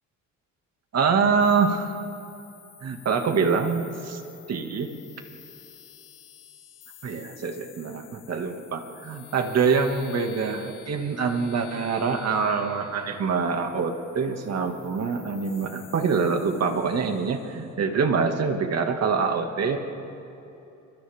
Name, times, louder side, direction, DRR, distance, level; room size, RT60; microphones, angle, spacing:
voice 1, 0.9-2.0 2.8-4.2 4.5-4.9 7.0-19.8, right 5 dB, 55° right, 4 dB, 2.1 m, -25 dB
sound 1, 1.4-17.7, left 8 dB, 85° left, 2.6 m, -50 dB
29.5 x 25.5 x 3.6 m, 2.8 s
cardioid pair, 90°, 30 cm